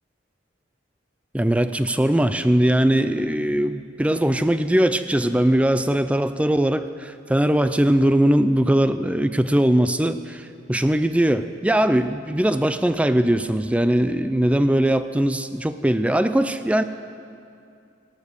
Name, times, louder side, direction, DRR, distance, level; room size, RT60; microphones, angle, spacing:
voice 1, 1.3-16.8, right 1 dB, 5° right, 11 dB, 0.4 m, -20 dB
16.0 x 12.0 x 6.5 m, 2.5 s
head